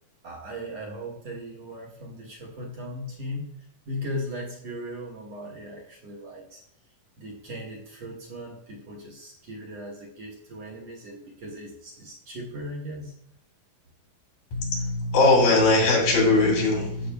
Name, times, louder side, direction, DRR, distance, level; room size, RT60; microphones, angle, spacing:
voice 1, 0.2-3.5 3.9-6.6 7.2-13.1, equal, 60° right, -4 dB, 1.9 m, -38 dB
voice 2, 14.5-17.1, left 2 dB, 85° left, -2 dB, 4.4 m, -20 dB
14.0 x 6.3 x 2.2 m, 0.74 s
omnidirectional pair, 3.9 m